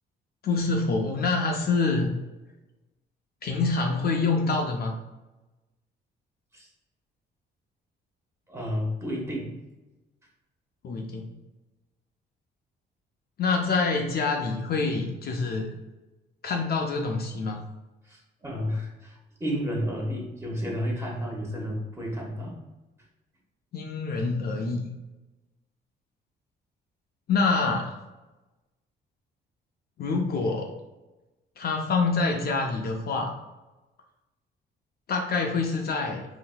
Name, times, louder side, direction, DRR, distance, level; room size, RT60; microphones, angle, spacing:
voice 1, 0.4-2.1 3.4-4.9 10.8-11.3 13.4-15.7 16.4-17.6 23.7-24.9 27.3-27.9 30.0-30.7 31.6-33.3 35.1-36.3, left 4 dB, 50° left, 2 dB, 0.5 m, -26 dB
voice 2, 8.5-9.5 18.1-22.6, equal, 15° right, -2 dB, 1.1 m, -31 dB
3.8 x 2.7 x 2.2 m, 1.1 s
cardioid pair, 90°, 20 cm